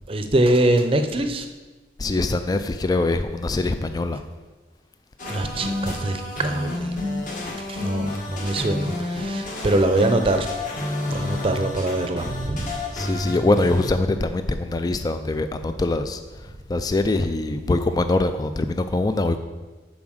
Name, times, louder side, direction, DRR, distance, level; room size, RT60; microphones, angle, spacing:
voice 1, 0.1-1.4 5.3-7.0 7.7-10.5 11.1-12.7, right 1 dB, 30° right, 7 dB, 0.6 m, -23 dB
voice 2, 2.0-4.2 12.9-16.2 16.7-19.4, left 2 dB, 20° left, 9 dB, 0.3 m, -23 dB
sound 1, 5.2-13.9, left 2 dB, 50° left, 1.6 m, -29 dB
7.1 x 4.9 x 6.4 m, 1.2 s
head